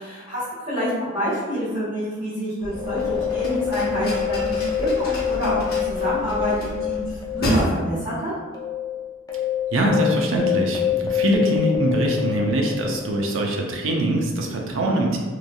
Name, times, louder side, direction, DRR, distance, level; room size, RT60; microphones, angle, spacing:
voice 1, 0.0-7.0 7.3-8.3, equal, 30° right, -16 dB, 1.3 m, -27 dB
sound 1, 2.6-7.6, equal, 50° left, 0.8 m, -31 dB
sound 2, 2.7-7.5 7.8-7.9 8.5-13.3, left 9 dB, 20° left, 0.4 m, -26 dB
voice 2, 9.7-15.2, right 1 dB, 70° right, 0 dB, 0.5 m, -23 dB
3.1 x 2.5 x 2.2 m, 1.4 s
head